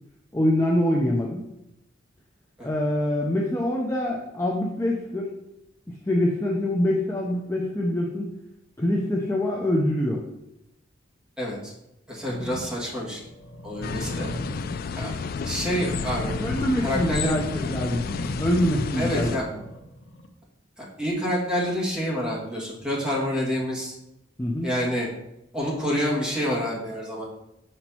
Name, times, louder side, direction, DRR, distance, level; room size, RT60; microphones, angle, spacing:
voice 1, 0.3-1.4 2.6-5.3 6.0-8.3 8.8-10.2 16.4-18.1 18.4-19.5 24.4-24.7, left 1 dB, 15° left, -1 dB, 0.6 m, -25 dB
voice 2, 11.4-11.7 12.1-13.2 13.6-14.3 14.9-15.2 15.4-16.4 16.8-17.5 19.0-19.5 20.8-23.9 24.6-25.1 25.5-27.2, equal, 5° right, -6 dB, 2.0 m, -27 dB
sound 1, 12.3-20.3, equal, 70° left, 0.8 m, -38 dB
sound 2, 13.8-19.4, left 5 dB, 50° left, 0.3 m, -31 dB
6.5 x 6.0 x 2.9 m, 0.89 s
head